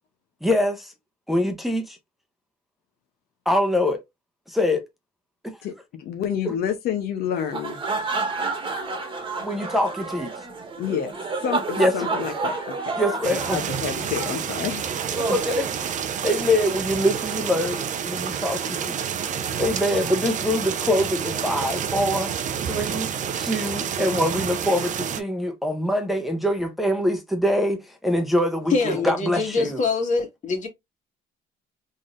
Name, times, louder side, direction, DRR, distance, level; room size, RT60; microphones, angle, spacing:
voice 1, 0.4-0.9 1.3-2.0 3.5-4.0 4.5-4.8 5.4-5.6 9.4-10.3 11.8-12.2 13.0-13.6 15.1-15.7 16.2-19.0 19.6-22.3 22.7-23.1 23.4-29.8, left 1 dB, ahead, 0.8 m, -24 dB
voice 2, 6.0-7.8 10.8-11.1 11.4-12.7 13.5-14.8 15.2-15.3, left 9 dB, 70° left, 0.8 m, -28 dB
sound 1, 7.4-16.4, right 3 dB, 30° right, 1.2 m, -30 dB
sound 2, 13.2-25.2, right 8 dB, 45° right, 0.6 m, -29 dB
voice 3, 28.7-30.7, left 4 dB, 45° left, 1.8 m, -24 dB
3.7 x 3.6 x 2.5 m
cardioid pair, 110°, 17 cm